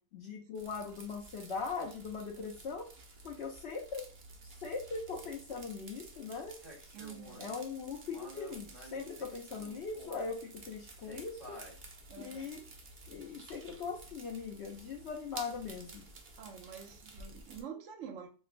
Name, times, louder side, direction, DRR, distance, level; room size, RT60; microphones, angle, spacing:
voice 1, 0.1-2.8 3.2-4.0 4.6-6.6 7.4-10.4 10.7-11.6 12.2-12.6 13.1-16.0, left 5 dB, 65° left, 0 dB, 0.6 m, -40 dB
sound 1, 0.5-17.6, right 3 dB, 85° right, 0.4 m, -53 dB
sound 2, 6.6-7.6 8.1-10.3 11.0-11.8 12.6-12.7, equal, 30° right, 1.1 m, -51 dB
voice 2, 6.9-7.5 12.1-12.4 16.4-18.3, right 7 dB, 65° right, 3 dB, 0.8 m, -47 dB
4.4 x 2.0 x 2.5 m, 0.37 s
omnidirectional pair, 1.7 m